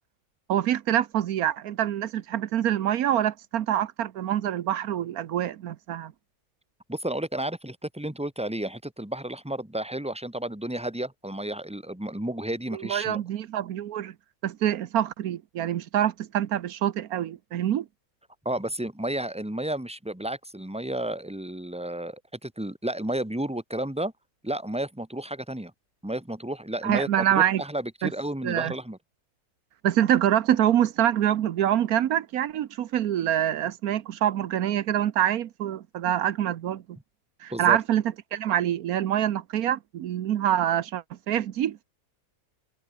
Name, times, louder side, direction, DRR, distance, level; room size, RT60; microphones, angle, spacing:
voice 1, 0.5-6.1 12.7-14.1 14.4-17.9 26.8-27.6 28.0-28.1 28.4-28.7 29.8-37.0 37.4-38.0 38.3-41.8, right 11 dB, 85° right, 1.3 m, -25 dB
voice 2, 6.9-13.2 18.4-24.1 24.4-25.7 26.0-29.0 37.5-37.8, right 1 dB, 5° right, 2.5 m, -32 dB
omnidirectional pair, 1.5 m